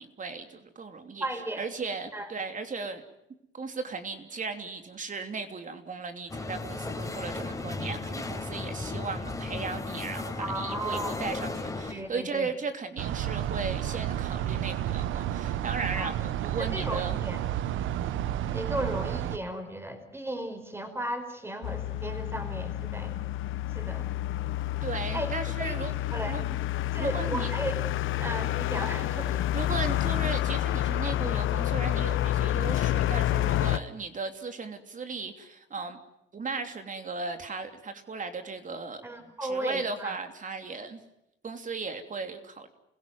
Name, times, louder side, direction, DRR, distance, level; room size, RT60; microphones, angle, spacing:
voice 1, 0.0-1.2 1.6-3.0 3.5-17.2 24.8-25.9 26.3-26.4 27.0-27.5 29.5-36.0 36.3-39.0 39.4-41.0 41.4-42.7, right 4 dB, 40° right, 7 dB, 3.1 m, -36 dB
voice 2, 1.2-1.7 2.1-2.3 10.4-11.2 11.9-12.5 15.9-16.1 16.6-17.4 18.5-23.1 23.7-24.1 25.1-25.3 25.6-25.7 26.1-26.5 26.9-27.8 28.2-29.4 39.0-40.2, right 1 dB, 10° right, 7 dB, 4.8 m, -35 dB
sound 1, 6.3-11.9, left 3 dB, 15° left, 4.7 m, -35 dB
sound 2, 13.0-19.4, right 11 dB, 85° right, 1.1 m, -31 dB
sound 3, 21.6-33.8, left 14 dB, 80° left, 0.8 m, -29 dB
28.0 x 17.0 x 9.4 m, 0.84 s
cardioid pair, 90°, 20 cm